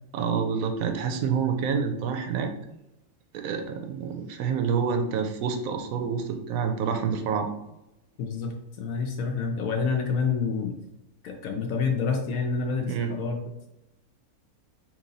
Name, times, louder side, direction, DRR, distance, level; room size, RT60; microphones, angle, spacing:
voice 1, 0.1-2.5 3.3-7.5 12.9-13.1, right 6 dB, 70° right, 6 dB, 0.9 m, -27 dB
voice 2, 8.2-10.7 11.2-13.4, left 5 dB, 70° left, 2 dB, 1.0 m, -28 dB
3.0 x 2.9 x 3.9 m, 0.90 s
omnidirectional pair, 1.6 m